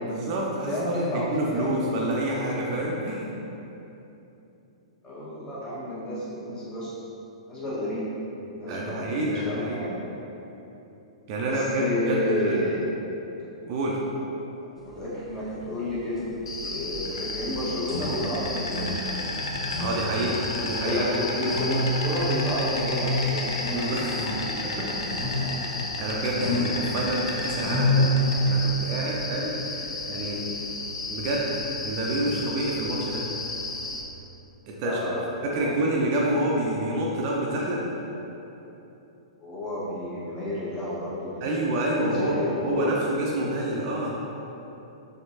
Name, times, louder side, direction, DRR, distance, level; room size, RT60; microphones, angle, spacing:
voice 1, 0.0-3.3 8.7-9.8 11.3-12.6 13.7-14.0 19.7-21.3 23.7-24.1 24.6-24.9 25.7-28.1 28.4-30.5 31.1-31.5 31.8-33.3 34.7-35.0 35.4-37.8 41.4-42.4 42.6-44.2, right 1 dB, 35° right, -3 dB, 0.4 m, -28 dB
voice 2, 0.7-1.9 5.0-6.9 7.4-8.0 8.6-10.0 11.5-12.8 14.1-14.2 14.6-16.3 16.6-19.0 19.2-20.1 20.8-23.6 24.5-25.0 26.9-27.0 34.8-35.9 38.6-38.7 39.4-42.9, left 1 dB, 20° left, -9 dB, 1.2 m, -31 dB
sound 1, 14.8-15.0 15.3-28.9, equal, 80° left, 0.8 m, -29 dB
Insect, 16.5-34.0, left 3 dB, 65° left, 0.4 m, -33 dB
4.3 x 2.7 x 2.7 m, 3.0 s
figure-of-eight pair, 105°, 3 cm